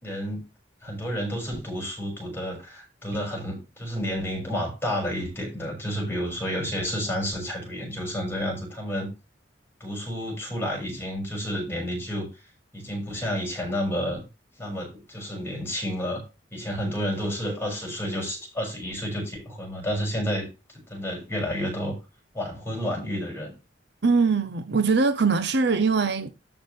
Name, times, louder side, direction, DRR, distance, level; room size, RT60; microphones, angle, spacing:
voice 1, 0.0-0.4 0.8-9.1 9.8-12.3 12.7-14.2 14.6-16.2 16.5-20.5 20.9-21.9 22.3-23.5, equal, 15° left, 6.7 m, -30 dB
voice 2, 24.0-26.3, right 4 dB, 65° right, 0.7 m, -22 dB
13.0 x 6.0 x 3.4 m
head